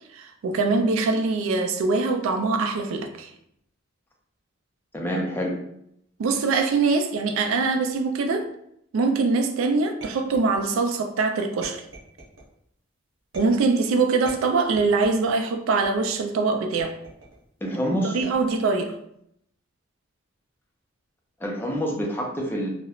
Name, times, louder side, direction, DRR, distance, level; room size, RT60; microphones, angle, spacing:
voice 1, 0.1-3.3 6.2-8.5 8.9-11.8 13.3-16.9 18.0-19.0, right 4 dB, 85° right, 0.3 m, -23 dB
voice 2, 4.9-5.5 17.6-18.2 21.4-22.7, equal, 10° left, 0.4 m, -27 dB
sound 1, 10.0-10.9 11.6-12.5 13.3-13.8 14.3-15.3 15.8-16.2 16.8-17.4 18.2-18.7, right 2 dB, 70° right, 0.9 m, -45 dB
2.9 x 2.0 x 2.3 m
head